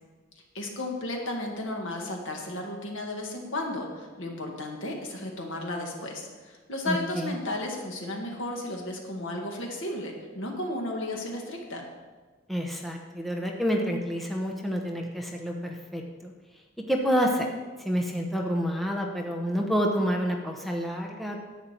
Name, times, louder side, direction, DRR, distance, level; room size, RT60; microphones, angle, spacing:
voice 1, 0.5-11.9, left 1 dB, 75° left, 1 dB, 1.8 m, -34 dB
voice 2, 6.9-7.3 12.5-16.3 16.9-17.5 17.8-21.4, equal, ahead, 0 dB, 0.9 m, -28 dB
10.5 x 8.6 x 4.5 m, 1.3 s
head